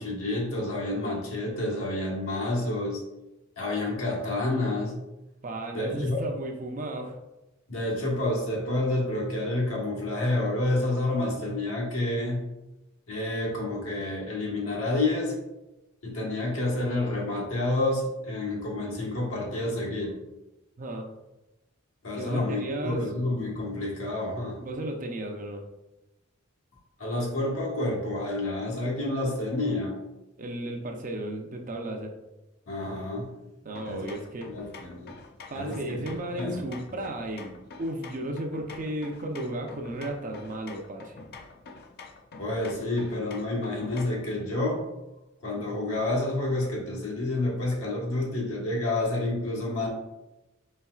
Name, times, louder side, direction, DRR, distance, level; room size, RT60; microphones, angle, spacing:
voice 1, 0.0-3.0 3.6-4.9 5.7-6.2 7.7-12.4 13.1-15.4 16.0-20.2 22.0-24.6 27.0-29.9 32.7-33.3 33.8-34.1 34.5-35.1 35.5-36.6 42.4-44.8 45.4-49.9, left 2 dB, 85° left, -3 dB, 1.3 m, -29 dB
voice 2, 5.4-7.2 19.7-19.8 20.8-21.1 22.1-23.3 24.6-25.6 30.4-32.1 33.6-34.5 35.5-41.2, right 1 dB, 40° right, 3 dB, 0.5 m, -34 dB
sound 1, 33.8-44.3, left 4 dB, 50° left, 0.4 m, -47 dB
4.2 x 3.9 x 2.3 m, 0.97 s
head